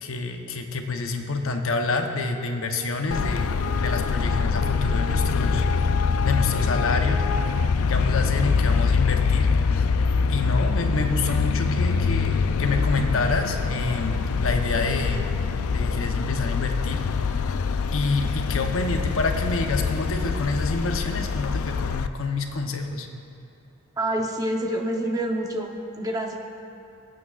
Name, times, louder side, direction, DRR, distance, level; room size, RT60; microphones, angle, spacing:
voice 1, 0.0-5.6 6.2-7.2 7.9-9.9 10.3-15.3 15.7-17.0 17.3-17.4 17.9-23.1, left 3 dB, 70° left, 4 dB, 0.9 m, -27 dB
Traffic noise roadway noise, 3.1-22.1, left 5 dB, 85° left, 0.4 m, -24 dB
voice 2, 24.0-25.7 26.0-26.4, right 1 dB, 15° right, 1 dB, 0.8 m, -27 dB
23.5 x 8.6 x 2.4 m, 2.6 s
head